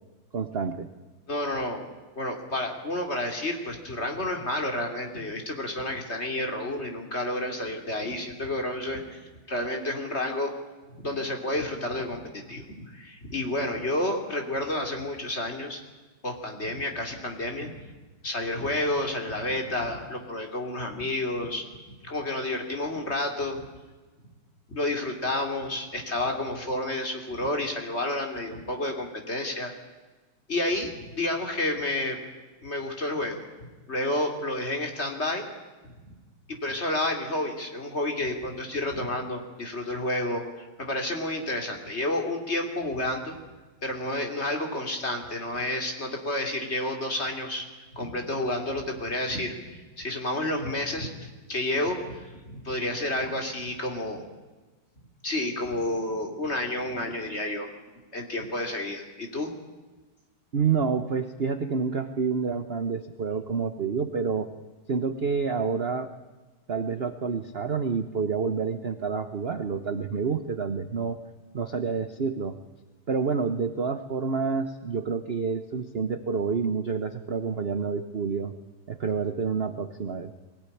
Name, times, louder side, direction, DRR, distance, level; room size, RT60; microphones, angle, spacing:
voice 1, 0.3-0.9 60.5-64.5 64.9-66.1 66.7-71.2 71.5-72.6 73.1-78.5 78.9-80.3, right 5 dB, 45° right, 10 dB, 0.8 m, -28 dB
voice 2, 1.3-1.8 2.1-9.2 9.5-10.5 11.0-15.8 16.2-17.9 18.2-21.8 22.0-23.6 24.7-29.7 30.5-32.2 32.6-33.4 33.9-35.4 36.5-43.4 43.8-54.2 55.2-57.7 58.1-59.5, left 1 dB, 30° left, 3 dB, 3.2 m, -30 dB
23.0 x 17.0 x 10.0 m, 1.2 s
omnidirectional pair, 2.4 m